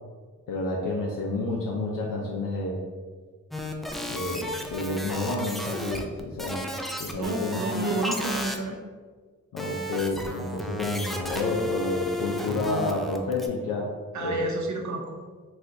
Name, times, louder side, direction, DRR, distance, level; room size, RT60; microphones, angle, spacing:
voice 1, 0.5-2.8 4.1-6.6 7.0-7.6 9.5-13.9 14.2-14.5, left 2 dB, 75° left, -2 dB, 0.6 m, -29 dB
sound 1, 3.5-8.6 9.6-13.5, left 1 dB, ahead, 0.3 m, -33 dB
voice 2, 7.1-8.8 14.1-15.2, right 2 dB, 60° right, 3 dB, 0.7 m, -30 dB
4.1 x 2.4 x 2.7 m, 1.5 s
cardioid pair, 55°, 33 cm